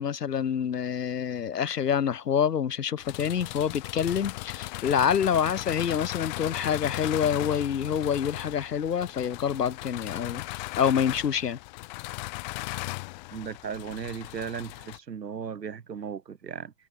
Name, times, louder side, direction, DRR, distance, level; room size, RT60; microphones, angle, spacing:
voice 1, 0.0-11.6, left 8 dB, 75° left, 7.2 m, -27 dB
sound 1, 3.0-15.0, left 25 dB, 25° left, 2.7 m, -37 dB
voice 2, 13.3-16.7, right 7 dB, 90° right, 6.4 m, -36 dB
hypercardioid pair, 160°, 48 cm